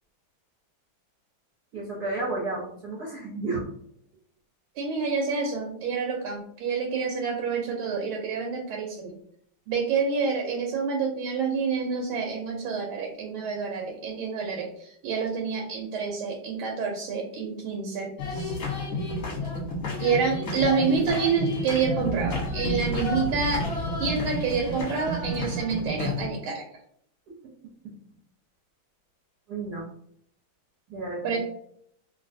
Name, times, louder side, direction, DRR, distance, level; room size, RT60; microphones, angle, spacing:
voice 1, 1.7-3.6 27.8-27.9 29.5-29.8 30.9-31.4, right 2 dB, 65° right, -3 dB, 1.0 m, -32 dB
voice 2, 4.8-9.1 9.7-18.6 20.0-23.7 24.0-26.6 31.2-31.4, right 5 dB, 85° right, 0 dB, 1.4 m, -28 dB
sound 1, 18.2-26.3, left 1 dB, 50° left, 1.2 m, -30 dB
3.2 x 2.5 x 2.5 m, 0.67 s
omnidirectional pair, 2.3 m